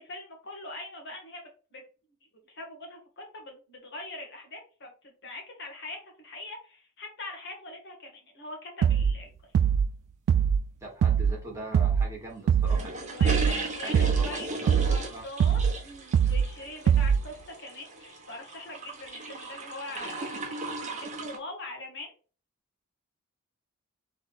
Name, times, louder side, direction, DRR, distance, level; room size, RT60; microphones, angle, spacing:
voice 1, 0.0-1.4 1.7-1.8 2.5-9.3 13.1-20.7 21.0-22.1, left 2 dB, 55° left, 1.5 m, -42 dB
sound 1, 8.8-9.2 9.5-9.9 10.3-10.7 11.0-11.4 11.7-12.1 12.5-12.8 13.2-13.6 13.9-14.3 14.7-15.0 15.4-15.8 16.1-16.5 16.9-17.3, right 7 dB, 80° right, 0.3 m, -22 dB
voice 2, 10.8-15.2, right 2 dB, 15° right, 1.4 m, -41 dB
sound 2, 12.7-21.4, right 2 dB, 35° right, 1.0 m, -37 dB
3.4 x 3.3 x 4.1 m
head